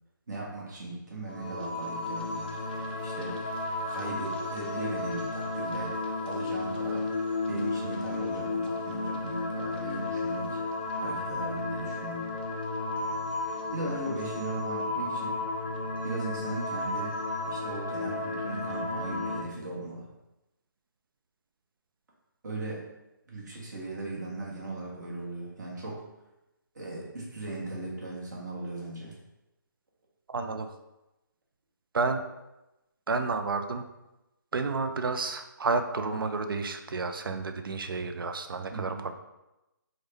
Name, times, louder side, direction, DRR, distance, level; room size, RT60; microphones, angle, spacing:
voice 1, 0.3-2.6 3.0-3.4 3.9-6.0 6.2-7.0 7.5-10.6 11.0-12.3 13.7-15.4 16.0-17.2 17.4-20.1 22.4-22.9 23.3-26.0 26.7-29.2 38.7-39.0, right 2 dB, 55° right, -4 dB, 1.1 m, -38 dB
sound 1, 1.3-19.4, left 2 dB, 25° left, 0.3 m, -33 dB
voice 2, 30.3-30.7 31.9-32.2 33.1-33.8 34.5-39.1, right 4 dB, 90° right, 7 dB, 0.4 m, -30 dB
3.5 x 2.1 x 3.3 m, 0.96 s
hypercardioid pair, 160°, 11 cm